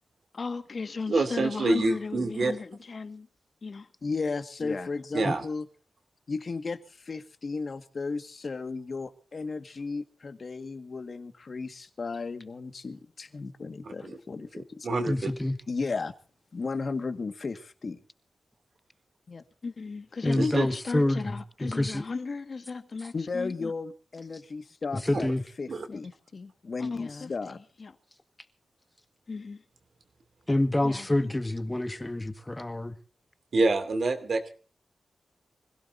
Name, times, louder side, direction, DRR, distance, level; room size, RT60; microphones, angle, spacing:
voice 1, 0.3-3.3 3.6-5.7 6.3-14.9 15.7-16.1 16.5-18.0 19.3-25.3 25.6-28.0 29.3-29.6 30.8-31.1, left 4 dB, 50° left, 1.7 m, -35 dB
voice 2, 1.1-2.6 5.1-5.4 14.0-14.2 14.8-15.3 20.3-20.7 25.2-25.3 25.7-25.9 33.5-34.5, right 3 dB, 65° right, 2.7 m, -26 dB
voice 3, 15.1-15.6 20.2-22.0 25.0-25.4 30.5-32.9, left 1 dB, 15° left, 1.7 m, -27 dB
25.5 x 16.5 x 2.7 m
wide cardioid pair, 90°, 0 cm